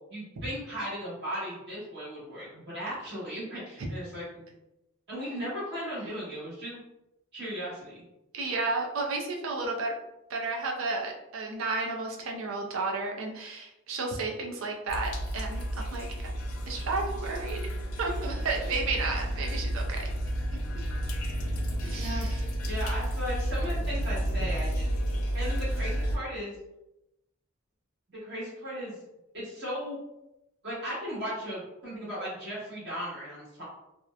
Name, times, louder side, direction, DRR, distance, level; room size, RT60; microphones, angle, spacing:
voice 1, 0.1-4.5 5.1-6.8 7.3-7.9 22.0-22.2 22.6-24.9 25.3-26.5 28.2-28.9 29.3-30.0 30.6-33.6, equal, 60° right, -8 dB, 1.3 m, -36 dB
voice 2, 8.3-10.0 10.3-16.3 16.7-17.6 18.0-20.1 21.8-22.4 23.7-23.8 24.4-24.5, right 3 dB, 80° right, 1 dB, 0.5 m, -32 dB
sound 1, 14.9-26.2, equal, 90° left, 0.5 m, -31 dB
2.8 x 2.1 x 2.3 m, 0.90 s
head